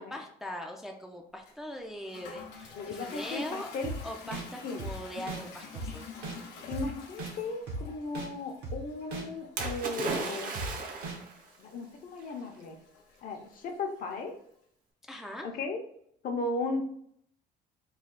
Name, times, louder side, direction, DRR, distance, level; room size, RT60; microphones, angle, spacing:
voice 1, 0.0-3.7 4.0-6.1 15.1-15.5, equal, ahead, 2 dB, 0.4 m, -41 dB
Toilet flush, 1.5-14.2, left 5 dB, 90° left, 0.8 m, -49 dB
voice 2, 2.8-3.9 4.6-4.9 6.7-10.5 11.6-12.8 13.2-14.3 15.4-15.8 16.2-16.8, left 3 dB, 55° left, 3 dB, 0.7 m, -36 dB
sound 1, 3.8-4.0 4.3-4.4 4.8-4.9 5.3-5.4 5.8-5.9 6.2-6.4 6.7-6.8 7.2-7.3 7.7-7.8 8.2-8.3 8.6-8.8 9.1-9.2 9.6-9.7 10.1-10.2 10.6-10.7 11.0-11.2, right 3 dB, 75° right, 1.1 m, -36 dB
Splash splatter, 9.6-11.4 12.3-12.4, right 3 dB, 55° right, 0.8 m, -35 dB
3.2 x 2.3 x 3.8 m, 0.67 s
cardioid pair, 110°, 17 cm